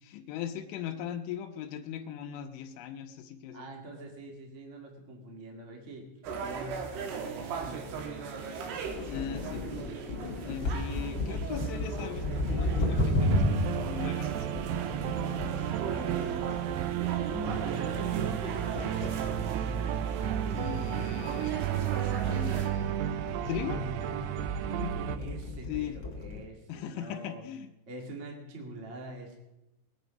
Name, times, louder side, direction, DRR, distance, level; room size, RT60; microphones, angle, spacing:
voice 1, 0.0-3.7 9.1-9.7 10.5-14.6 20.5-21.6 22.3-23.9 25.7-26.0 26.7-27.7, left 9 dB, 85° left, 5 dB, 3.2 m, -39 dB
voice 2, 3.5-8.7 9.3-10.4 15.8-16.5 17.2-20.0 23.7-24.4 24.6-27.5 27.9-29.4, right 1 dB, 50° right, 1 dB, 0.8 m, -44 dB
sound 1, 6.2-22.7, right 6 dB, 65° right, 3.2 m, -39 dB
sound 2, 8.8-26.4, left 1 dB, 65° left, 1.2 m, -35 dB
sound 3, 13.2-25.2, right 11 dB, 85° right, 2.4 m, -32 dB
20.5 x 9.1 x 5.2 m, 0.92 s
omnidirectional pair, 5.4 m